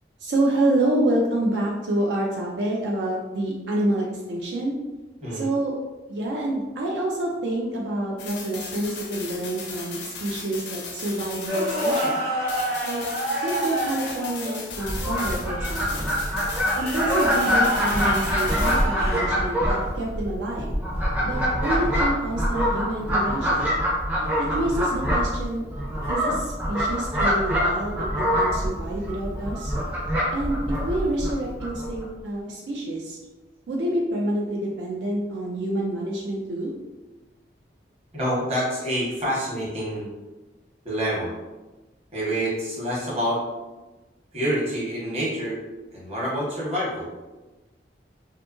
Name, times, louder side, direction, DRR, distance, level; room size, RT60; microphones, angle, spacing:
voice 1, 0.2-4.8 5.3-5.8 6.1-12.2 12.8-13.0 13.4-16.1 16.8-20.8 21.2-23.7 24.4-25.6 26.1-29.7 30.3-33.2 33.7-36.7, right 1 dB, 80° right, -2 dB, 0.4 m, -27 dB
sound 1, 8.2-12.2 12.5-18.8, left 4 dB, 80° left, 0.5 m, -37 dB
sound 2, 11.5-14.6 16.6-19.3 21.7-21.9 24.2-24.5 27.4-27.6 29.7-30.0, equal, 60° right, 1.0 m, -29 dB
Fowl, 14.7-32.0, equal, 10° right, 0.4 m, -25 dB
voice 2, 38.1-40.1 40.8-41.3 42.1-43.4 44.3-45.6 45.9-47.1, equal, 35° right, -7 dB, 1.0 m, -27 dB
2.7 x 2.4 x 2.5 m, 1.1 s
head